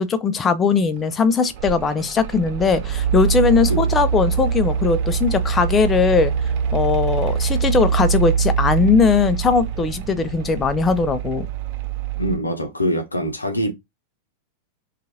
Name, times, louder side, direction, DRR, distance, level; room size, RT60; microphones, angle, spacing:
voice 1, 0.0-6.3 6.7-11.5, left 5 dB, 20° left, 0.4 m, -19 dB
Mechanical fan, 1.1-12.4, right 7 dB, 45° right, 0.6 m, -23 dB
voice 2, 12.2-13.7, equal, 80° left, 0.6 m, -24 dB
2.7 x 2.4 x 2.7 m
figure-of-eight pair, 90°, 0 cm